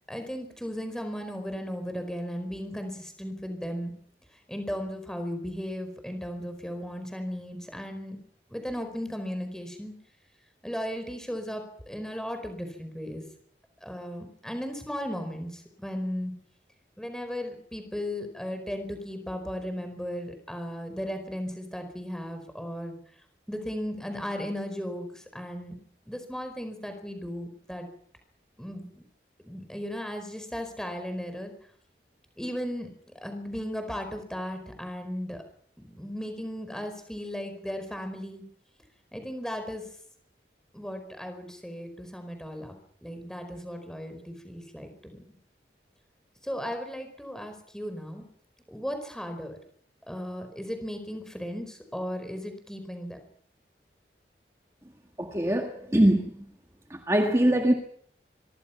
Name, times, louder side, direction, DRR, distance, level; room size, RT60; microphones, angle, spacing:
voice 1, 0.1-3.9 4.3-8.2 8.5-9.9 10.6-13.2 13.8-16.3 17.0-23.0 23.5-25.8 26.1-27.9 28.6-29.0 29.4-31.5 32.4-35.4 35.8-38.4 39.1-39.9 40.7-42.7 43.0-45.2 46.4-48.3 48.7-49.6 50.1-53.2, equal, 5° left, 4.6 m, -36 dB
voice 2, 55.2-56.3 56.9-57.7, right 1 dB, 15° right, 1.7 m, -23 dB
24.5 x 24.0 x 5.9 m
head